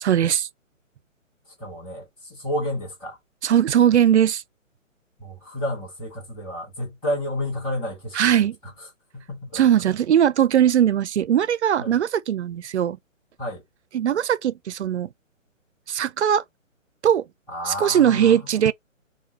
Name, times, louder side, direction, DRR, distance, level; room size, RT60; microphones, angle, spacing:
voice 1, 0.0-0.5 3.4-4.4 8.2-8.6 9.5-13.0 13.9-15.1 15.9-16.4 17.0-17.2 17.7-18.7, right 10 dB, 60° right, 0.5 m, -20 dB
voice 2, 1.6-3.2 5.2-8.9 9.1-9.6 11.8-12.0 13.4-13.6 17.5-18.7, left 1 dB, 10° left, 1.7 m, -31 dB
3.7 x 2.3 x 4.0 m
figure-of-eight pair, 145°, 39 cm